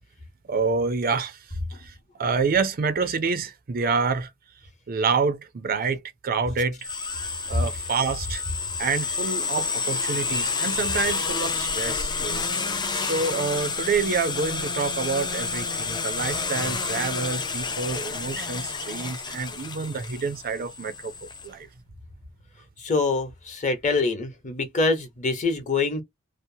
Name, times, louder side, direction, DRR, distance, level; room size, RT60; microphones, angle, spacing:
voice 1, 0.5-1.4 1.8-1.9 2.2-4.3 4.9-6.8 7.5-8.4 8.8-12.4 12.9-21.1 21.4-21.7, right 4 dB, 45° right, 0.5 m, -27 dB
sound 1, 6.8-21.5, left 4 dB, 20° left, 0.4 m, -29 dB
voice 2, 22.8-26.0, left 3 dB, 35° left, 0.9 m, -25 dB
2.8 x 2.0 x 2.7 m
head